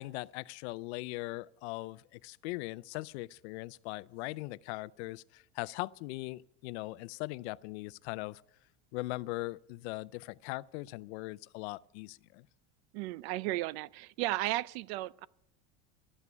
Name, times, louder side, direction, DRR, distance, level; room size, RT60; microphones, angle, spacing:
voice 1, 0.0-8.4 8.9-12.5, left 21 dB, 75° left, 0.5 m, -40 dB
voice 2, 12.9-15.3, right 17 dB, 70° right, 0.6 m, -34 dB
12.5 x 8.4 x 9.5 m
cardioid pair, 165°, 34 cm